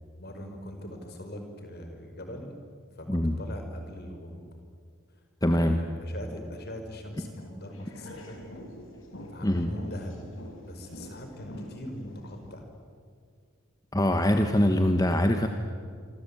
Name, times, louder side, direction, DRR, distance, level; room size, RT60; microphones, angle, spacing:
voice 1, 0.2-2.5 3.0-4.4 5.6-8.4 9.3-10.3 10.6-12.7, left 1 dB, 50° left, 5 dB, 5.1 m, -41 dB
voice 2, 5.4-5.8 9.4-9.7 13.9-15.5, left 1 dB, 20° left, 6 dB, 1.3 m, -23 dB
sound 1, 7.4-12.5, equal, 75° left, 5.5 m, -46 dB
27.0 x 25.0 x 8.7 m, 2.2 s
head